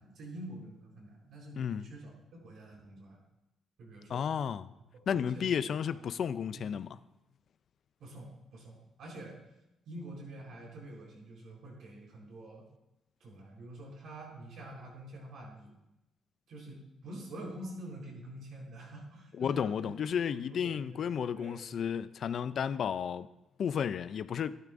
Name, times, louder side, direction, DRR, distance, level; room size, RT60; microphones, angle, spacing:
voice 1, 0.0-3.2 3.8-4.3 5.1-5.6 6.5-6.7 8.0-9.4 9.9-12.7 13.2-15.8 16.5-20.0 20.3-21.6, right 1 dB, 70° right, 4.0 m, -47 dB
voice 2, 4.1-4.7 5.1-7.0 19.4-23.3 23.6-24.5, left 7 dB, 60° left, 0.4 m, -32 dB
12.5 x 12.0 x 2.6 m
cardioid pair, 90°, 0 cm